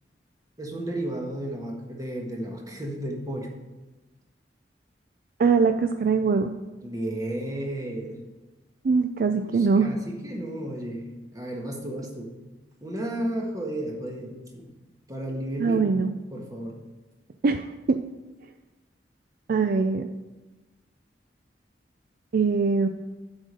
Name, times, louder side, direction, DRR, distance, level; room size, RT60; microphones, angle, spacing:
voice 1, 0.6-3.5 6.8-8.2 9.4-12.3 12.8-14.7 15.1-15.8 16.3-16.8, right 1 dB, 20° right, 0 dB, 1.5 m, -33 dB
voice 2, 5.4-6.5 8.8-9.9 15.6-16.1 17.4-18.0 19.5-20.1 22.3-22.9, right 4 dB, 55° right, 8 dB, 0.4 m, -22 dB
7.5 x 5.3 x 6.3 m, 1.1 s
head